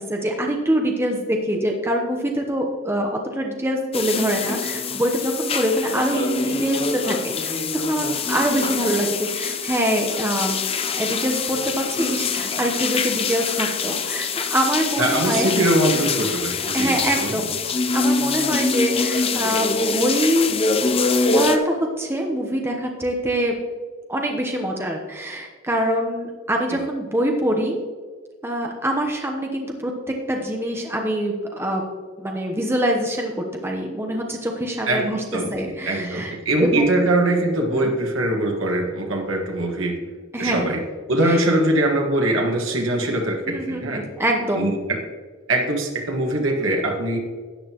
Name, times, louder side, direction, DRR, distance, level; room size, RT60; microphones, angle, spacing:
voice 1, 0.1-10.7 11.0-15.5 16.7-17.6 17.9-20.5 21.3-23.5 24.1-27.8 28.4-29.9 30.3-31.8 32.2-36.3 36.6-37.0 37.7-37.9 40.3-40.7 41.2-41.4 43.4-44.7, right 1 dB, 10° right, 1 dB, 0.9 m, -24 dB
sound 1, 3.9-21.6, left 4 dB, 30° left, 0.6 m, -24 dB
voice 2, 15.0-17.3 34.9-35.5 35.8-40.0 40.4-40.8 41.1-44.0 44.6-45.0 45.5-47.2, right 1 dB, 75° right, 1 dB, 1.6 m, -22 dB
13.0 x 9.0 x 3.0 m, 1.5 s
head